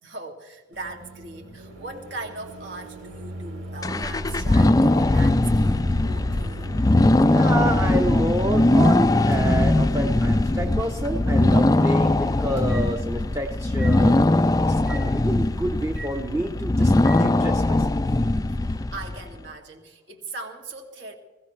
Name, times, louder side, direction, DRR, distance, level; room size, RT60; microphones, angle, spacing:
voice 1, 0.0-6.7 18.5-21.1, right 2 dB, 65° right, 3 dB, 2.5 m, -39 dB
Microwave oven, 0.7-17.2, right 1 dB, 85° right, 3.4 m, -38 dB
sound 1, 3.8-19.2, left 2 dB, 20° left, 0.4 m, -20 dB
voice 2, 7.3-16.9 17.2-17.9, right 1 dB, 15° right, 5 dB, 0.8 m, -29 dB
21.5 x 16.0 x 3.3 m, 1.2 s
head